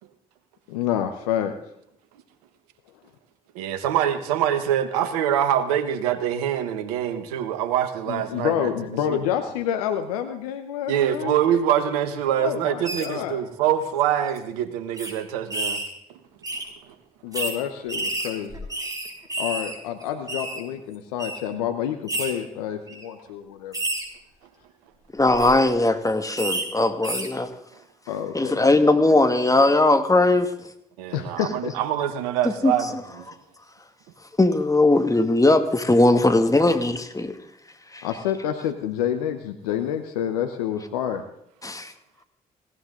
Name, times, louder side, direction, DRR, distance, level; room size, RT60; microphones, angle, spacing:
voice 1, 0.7-1.5 8.1-11.4 12.3-13.4 17.2-18.6 19.4-23.8 28.1-28.7 31.1-31.7 38.0-41.2, left 9 dB, 90° left, 7 dB, 1.0 m, -28 dB
voice 2, 3.5-8.7 9.1-9.2 10.9-15.8 16.9-17.0 31.0-32.9, right 10 dB, 90° right, 12 dB, 1.3 m, -24 dB
sound 1, 12.8-13.1 13.9-14.0 14.3-14.4 15.0-15.1 15.5-15.9 16.4-16.6 17.3-17.5 17.9-19.8 20.0-20.6 21.2-21.4 22.1-22.3 22.9-23.1 23.7-24.0 25.2-25.5 26.4-26.6 27.0-27.3, right 2 dB, 20° right, 6.1 m, -29 dB
voice 3, 25.1-27.5 28.3-30.5 32.6-32.7 34.4-37.4 37.9-38.1 41.6-41.9, left 2 dB, 20° left, 8 dB, 2.3 m, -19 dB
19.5 x 17.0 x 3.9 m, 0.76 s
hypercardioid pair, 45°, 19 cm